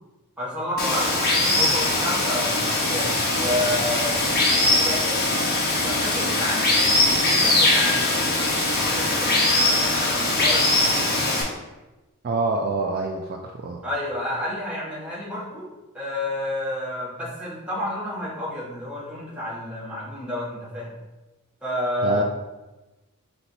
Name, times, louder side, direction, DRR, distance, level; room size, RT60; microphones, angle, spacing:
voice 1, 0.4-5.4 5.7-11.3 13.8-15.7 15.9-20.9 21.6-22.2, left 1 dB, 5° right, -8 dB, 1.4 m, -30 dB
Water, 0.8-11.4, left 2 dB, 45° left, 1.0 m, -21 dB
voice 2, 12.2-13.8 22.0-22.2, right 3 dB, 45° right, 1 dB, 0.3 m, -26 dB
4.5 x 4.0 x 2.7 m, 1.1 s
head